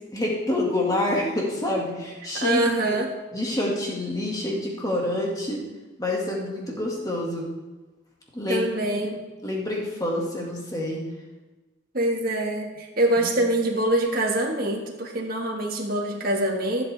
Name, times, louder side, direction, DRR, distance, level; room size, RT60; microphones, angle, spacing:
voice 1, 0.1-3.0 3.3-5.7 6.0-7.5 8.3-8.7 9.4-11.1 13.2-13.3, left 1 dB, 20° left, -2 dB, 1.9 m, -27 dB
voice 2, 2.3-3.1 8.5-9.2 11.9-16.8, right 1 dB, 45° right, 0 dB, 1.7 m, -24 dB
14.0 x 7.9 x 3.4 m, 1.2 s
head